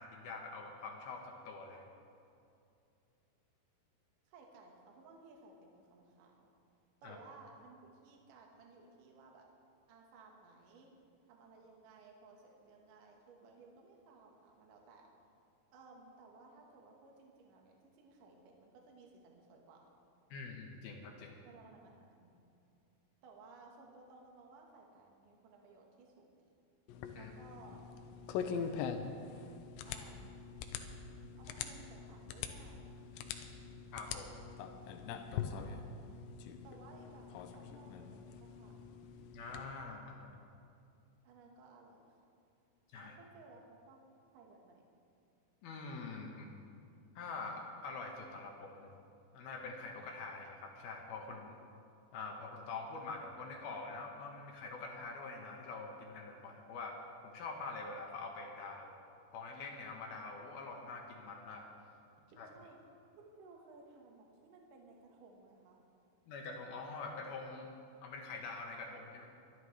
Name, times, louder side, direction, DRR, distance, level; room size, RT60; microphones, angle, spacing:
voice 1, 0.0-1.9 7.0-7.2 20.3-21.4 27.1-27.3 33.9-34.4 39.3-40.4 42.9-43.2 45.6-46.5 47.2-48.9 49.3-51.6 52.1-57.0 57.2-59.0 59.3-61.7 62.4-62.5 66.3-67.7 68.0-69.3, left 3 dB, 70° left, 1 dB, 2.7 m, -45 dB
voice 2, 4.3-6.5 7.0-9.5 9.9-10.9 11.3-15.1 15.7-19.9 21.4-22.3 23.2-26.6 27.1-27.9 28.5-29.2 29.8-30.4 31.4-33.0 35.3-35.9 36.6-38.9 41.2-42.2 43.0-44.0 44.3-44.8 62.5-62.8 63.2-65.8, right 3 dB, 60° right, 0 dB, 2.6 m, -59 dB
sound 1, 26.9-39.6, left 7 dB, 85° left, 2.8 m, -43 dB
23.5 x 11.0 x 3.3 m, 2.6 s
omnidirectional pair, 5.1 m